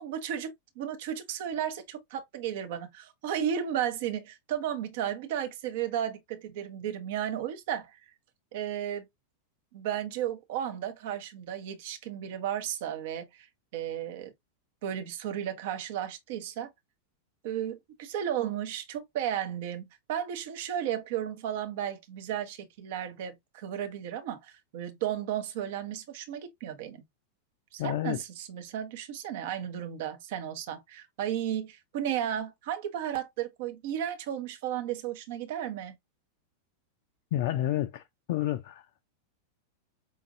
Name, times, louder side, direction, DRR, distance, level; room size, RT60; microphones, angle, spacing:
voice 1, 0.0-8.0 8.5-9.1 9.7-13.5 13.7-14.3 14.8-16.7 17.4-27.0 27.7-36.0, right 10 dB, 50° right, 0.8 m, -34 dB
voice 2, 27.8-28.2 37.3-38.0 38.3-39.0, left 13 dB, 50° left, 0.4 m, -30 dB
5.2 x 2.5 x 2.6 m
figure-of-eight pair, 90°, 0 cm